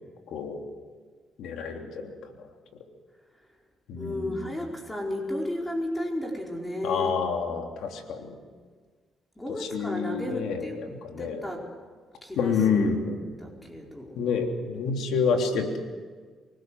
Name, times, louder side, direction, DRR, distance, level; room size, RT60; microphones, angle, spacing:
voice 1, 0.3-0.6 1.4-2.5 3.9-4.5 6.8-8.4 9.6-11.4 12.4-13.1 14.2-15.8, left 5 dB, 80° left, 3 dB, 3.3 m, -28 dB
voice 2, 4.0-7.2 9.4-10.8 11.2-11.6 12.2-14.1, left 1 dB, 15° left, 0 dB, 4.9 m, -33 dB
25.5 x 20.0 x 7.9 m, 1.5 s
cardioid pair, 90°, 0 cm